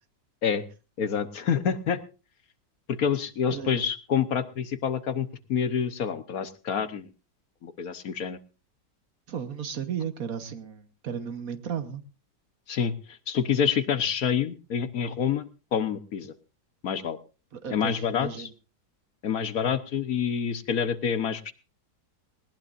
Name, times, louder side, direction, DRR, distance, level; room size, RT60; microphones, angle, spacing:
voice 1, 1.0-2.0 2.9-7.1 7.6-8.4 12.7-15.4 15.7-16.3 16.8-17.2 17.7-18.5 19.2-21.5, left 7 dB, 60° left, 12 dB, 1.4 m, -27 dB
voice 2, 9.3-12.0 17.6-18.5, right 7 dB, 55° right, 11 dB, 1.6 m, -34 dB
19.5 x 19.0 x 2.5 m, 0.33 s
omnidirectional pair, 1.8 m